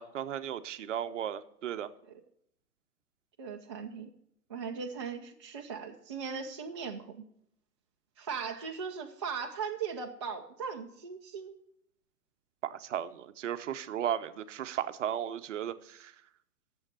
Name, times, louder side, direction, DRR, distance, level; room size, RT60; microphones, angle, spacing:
voice 1, 0.0-1.9 12.6-16.1, right 10 dB, 50° right, 13 dB, 0.8 m, -35 dB
voice 2, 3.4-4.1 4.5-7.2 8.2-11.6, right 6 dB, 20° right, 2 dB, 0.4 m, -38 dB
9.5 x 7.1 x 7.9 m, 0.72 s
figure-of-eight pair, 120°, 47 cm